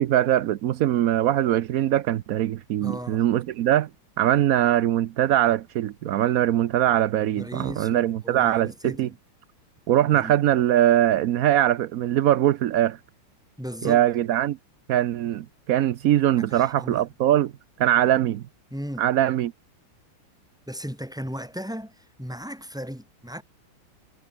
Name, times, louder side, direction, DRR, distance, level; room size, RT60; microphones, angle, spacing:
voice 1, 0.0-3.9 4.2-9.1 9.9-13.0 13.8-14.6 14.9-17.5 17.8-18.4 19.0-19.5, right 12 dB, 85° right, 0.7 m, -22 dB
voice 2, 2.8-3.2 7.1-9.1 10.1-10.3 13.6-14.0 16.4-17.0 18.7-19.1 20.7-23.4, equal, ahead, 5.1 m, -36 dB
omnidirectional pair, 2.3 m